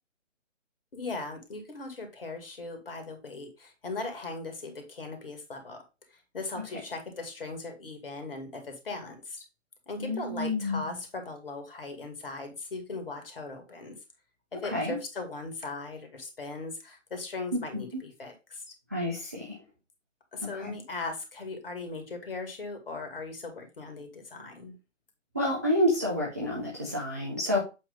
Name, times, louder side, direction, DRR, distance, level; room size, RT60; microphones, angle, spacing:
voice 1, 0.9-5.8 6.1-9.4 9.9-14.0 14.5-18.7 20.3-24.8, left 3 dB, 50° left, 5 dB, 2.1 m, -39 dB
voice 2, 10.0-11.0 14.6-15.0 17.5-18.0 18.9-19.6 20.4-20.7 25.3-27.6, left 1 dB, 15° right, -4 dB, 0.6 m, -29 dB
7.9 x 3.0 x 5.1 m, 0.28 s
figure-of-eight pair, 145°, 38 cm